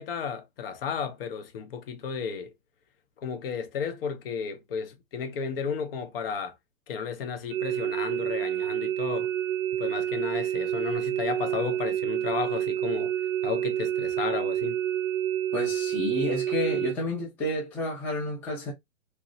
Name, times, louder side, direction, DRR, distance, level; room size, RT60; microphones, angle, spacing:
voice 1, 0.0-2.5 3.2-6.6 6.9-9.3 9.8-13.1 13.4-14.8, left 6 dB, 45° left, 0.6 m, -33 dB
sound 1, 7.5-16.9, right 11 dB, 65° right, 0.6 m, -28 dB
voice 2, 15.5-18.7, left 1 dB, 5° left, 0.5 m, -30 dB
3.0 x 2.5 x 2.5 m
hypercardioid pair, 130°, 42 cm